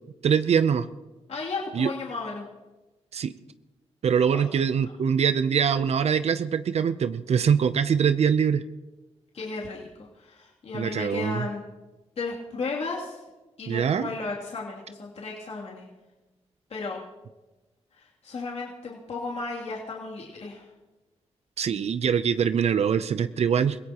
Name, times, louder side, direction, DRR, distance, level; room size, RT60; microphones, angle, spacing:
voice 1, 0.2-0.9 1.7-1.9 3.1-3.3 4.0-8.6 10.7-11.4 13.7-14.1 21.6-23.8, right 7 dB, 70° right, 12 dB, 0.6 m, -23 dB
voice 2, 1.3-2.4 4.3-4.4 4.8-4.9 9.3-11.6 12.2-13.2 13.6-15.9 16.7-17.0 17.9-20.7, left 3 dB, 65° left, -4 dB, 2.8 m, -34 dB
26.5 x 17.0 x 3.0 m, 1.1 s
cardioid pair, 75°, 12 cm